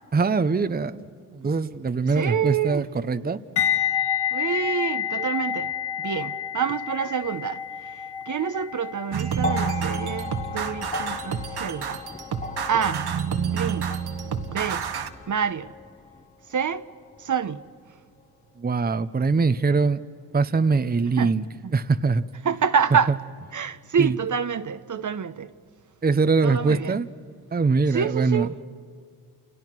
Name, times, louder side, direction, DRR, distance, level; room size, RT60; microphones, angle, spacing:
voice 1, 0.1-1.1 1.3-3.4 18.6-20.0 20.3-21.4 21.7-22.2 24.0-24.1 26.0-27.1 27.5-28.5, right 4 dB, 20° right, 0.9 m, -22 dB
voice 2, 2.1-2.9 4.3-5.7 6.0-7.9 8.3-12.0 12.7-13.0 13.5-13.9 14.5-14.8 15.3-15.7 16.5-16.8 17.2-17.6 21.2-21.3 22.4-23.2 23.5-25.5 26.4-27.0 27.9-28.6, right 7 dB, 45° right, 1.0 m, -27 dB
sound 1, 3.6-12.5 12.8-13.1, left 9 dB, 80° left, 1.9 m, -30 dB
sound 2, 9.1-15.1, right 7 dB, 65° right, 1.7 m, -29 dB
sound 3, 9.4-17.7 18.8-18.9, left 5 dB, 15° left, 1.3 m, -37 dB
29.0 x 29.0 x 6.2 m
cardioid pair, 65°, 41 cm